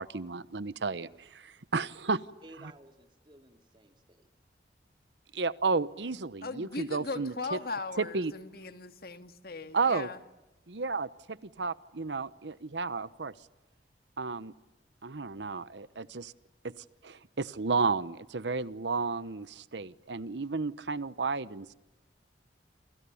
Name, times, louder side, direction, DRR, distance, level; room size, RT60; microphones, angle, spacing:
voice 1, 0.0-2.2 5.3-7.6 8.0-8.3 9.7-10.1 10.7-13.3 14.2-14.5 15.0-16.3 16.6-16.7 17.0-21.7, right 4 dB, 85° right, 16 dB, 1.0 m, -32 dB
voice 2, 2.4-4.3, right 1 dB, 25° right, 6 dB, 3.0 m, -55 dB
voice 3, 6.4-10.2, left 3 dB, 60° left, 8 dB, 2.1 m, -39 dB
29.5 x 28.0 x 7.1 m, 1.0 s
head